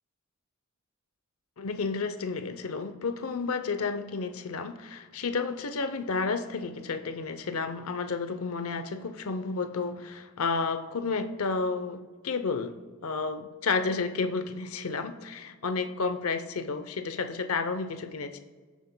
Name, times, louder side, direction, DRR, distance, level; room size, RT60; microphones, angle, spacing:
voice 1, 1.6-18.4, left 4 dB, 75° left, 9 dB, 0.6 m, -31 dB
17.5 x 7.2 x 2.2 m, 1.4 s
head